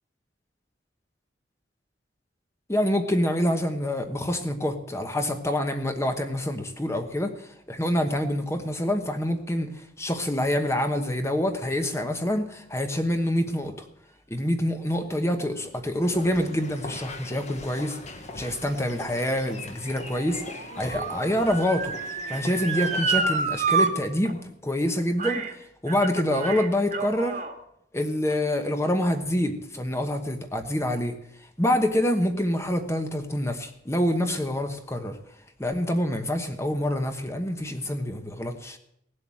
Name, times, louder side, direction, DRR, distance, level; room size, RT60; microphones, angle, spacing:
voice 1, 2.7-9.7 10.0-13.8 14.3-18.0 18.3-20.4 20.8-22.0 22.3-25.4 25.8-27.4 27.9-31.2 31.6-35.2 35.6-38.8, left 1 dB, 15° left, 6 dB, 1.2 m, -26 dB
sound 1, 16.0-23.4, left 2 dB, 35° left, 1.3 m, -41 dB
Motor vehicle (road) / Siren, 18.7-23.9 24.3-24.4 25.2-25.5 25.9-27.5 28.3-28.4, right 4 dB, 40° right, 1.5 m, -29 dB
17.5 x 7.7 x 7.6 m, 0.74 s
head